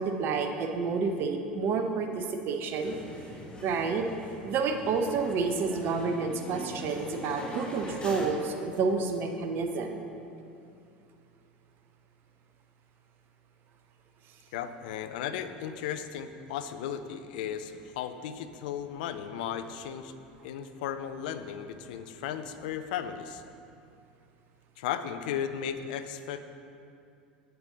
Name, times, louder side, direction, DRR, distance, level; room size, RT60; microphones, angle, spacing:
voice 1, 0.0-3.0 3.6-4.1 4.4-10.0, right 4 dB, 45° right, 5 dB, 0.7 m, -29 dB
sound 1, 2.8-8.3, left 1 dB, 20° left, 1.4 m, -42 dB
voice 2, 14.5-20.1 20.4-23.4 24.8-26.4, left 9 dB, 65° left, 10 dB, 0.4 m, -35 dB
8.1 x 6.8 x 3.9 m, 2.6 s
hypercardioid pair, 75°, 5 cm